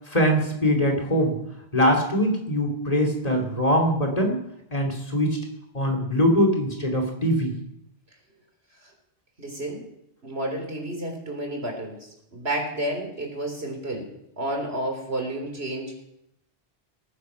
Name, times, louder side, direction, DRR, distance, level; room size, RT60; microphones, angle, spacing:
voice 1, 0.1-1.4 1.7-4.4 4.7-5.4 5.7-7.5, equal, 35° left, 2 dB, 2.8 m, -22 dB
voice 2, 9.4-9.8 10.2-14.1 14.4-15.9, right 1 dB, 75° right, 2 dB, 4.0 m, -31 dB
17.5 x 10.0 x 5.9 m, 0.78 s
omnidirectional pair, 1.1 m